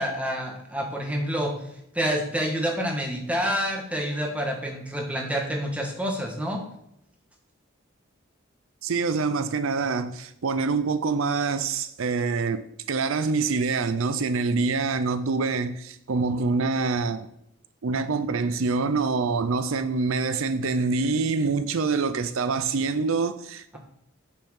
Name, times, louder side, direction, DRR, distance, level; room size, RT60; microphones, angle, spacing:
voice 1, 0.0-1.5 1.9-6.6, equal, 5° right, 1.4 m, -28 dB
voice 2, 8.8-17.3 17.8-23.8, right 4 dB, 75° right, 0.5 m, -25 dB
6.8 x 6.0 x 6.4 m
head